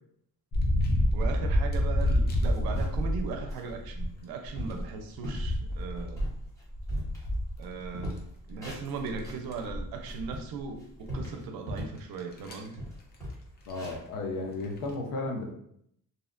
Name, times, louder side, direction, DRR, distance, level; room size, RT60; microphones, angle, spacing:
sound 1, 0.5-4.1 4.5-8.1 8.5-8.6 9.0-10.3 10.6-10.7 11.2-11.3 12.1-12.7 13.7-13.9 14.6-14.9, equal, 30° left, 0.4 m, -29 dB
voice 1, 1.1-6.2 7.6-8.2 8.5-12.8, right 5 dB, 80° right, 5 dB, 0.5 m, -38 dB
sound 2, 2.3-3.1 3.5-3.7 4.2-4.3 4.5-4.8 5.2-5.5 5.9-7.6 7.9-9.5 9.9-12.0 12.4-12.5 12.8-14.9, equal, 10° left, 0.8 m, -39 dB
voice 2, 13.7-15.5, left 2 dB, 70° left, 2 dB, 0.6 m, -34 dB
2.7 x 2.1 x 2.4 m, 0.70 s
cardioid pair, 140°, 36 cm